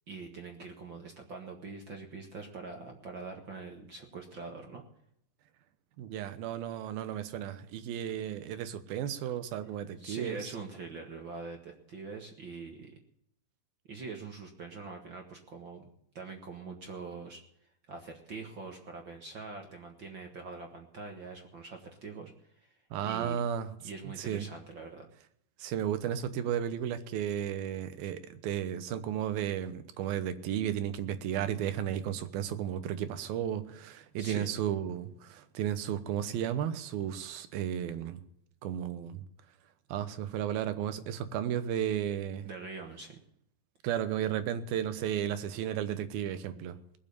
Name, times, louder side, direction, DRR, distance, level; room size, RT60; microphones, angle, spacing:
voice 1, 0.1-4.8 10.0-13.0 13.9-15.9 16.1-17.4 17.9-22.7 23.0-23.4 23.8-25.1 34.2-34.5 42.4-43.2, right 4 dB, 50° right, 1.5 m, -43 dB
voice 2, 6.0-10.5 22.9-23.7 24.3-24.5 25.6-38.2 38.6-39.2 39.9-42.5 43.8-46.8, right 10 dB, 85° right, 2.9 m, -34 dB
20.0 x 7.5 x 6.9 m
omnidirectional pair, 4.1 m